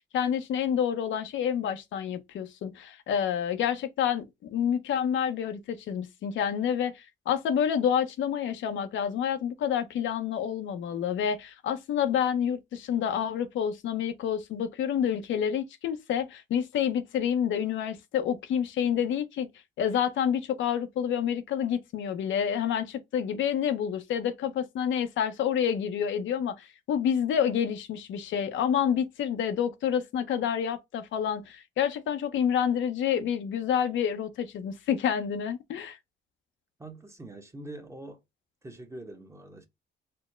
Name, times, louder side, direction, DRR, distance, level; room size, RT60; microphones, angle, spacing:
voice 1, 0.1-19.5 19.8-36.0, left 8 dB, 75° left, 0.6 m, -28 dB
voice 2, 36.8-38.2 38.6-39.7, right 1 dB, 15° right, 0.9 m, -44 dB
4.3 x 2.1 x 3.1 m
cardioid pair, 90°, 20 cm